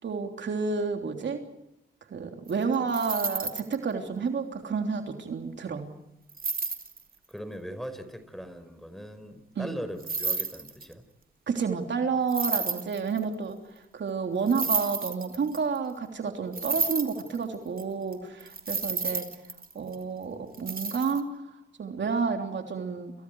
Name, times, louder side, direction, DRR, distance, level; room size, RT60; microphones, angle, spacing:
voice 1, 0.0-1.4 2.1-5.9 9.6-9.8 11.5-13.6 13.9-19.3 19.7-23.1, right 5 dB, 70° right, 4 dB, 3.3 m, -30 dB
sound 1, 2.5-3.8 6.3-7.0 10.0-10.9 12.3-13.3 14.5-15.8 16.5-17.8 18.1-18.2 18.4-20.0 20.5-21.2, right 4 dB, 50° right, 2.9 m, -31 dB
voice 2, 7.3-11.1, equal, ahead, 10 dB, 5.1 m, -40 dB
30.0 x 28.0 x 4.8 m, 0.88 s
cardioid pair, 60°, 19 cm